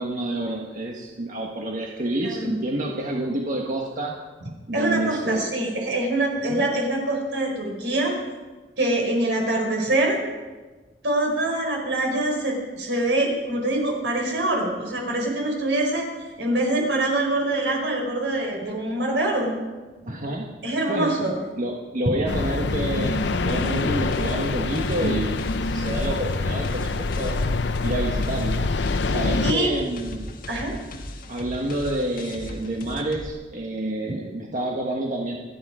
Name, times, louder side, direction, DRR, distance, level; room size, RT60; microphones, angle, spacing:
voice 1, 0.0-4.2 4.7-5.5 6.5-6.7 20.0-20.5 20.9-27.4 27.8-28.7 29.0-30.3 31.3-35.4, right 1 dB, 45° right, 0 dB, 1.4 m, -28 dB
voice 2, 4.7-8.1 8.8-10.2 11.0-16.1 16.4-19.5 20.6-21.3 29.4-29.7 30.5-30.7, right 1 dB, 80° right, 0 dB, 5.1 m, -24 dB
sound 1, 22.3-29.5, left 3 dB, 75° left, 0.7 m, -25 dB
sound 2, 23.2-33.3, left 1 dB, 50° left, 1.7 m, -38 dB
28.0 x 10.0 x 4.9 m, 1.3 s
head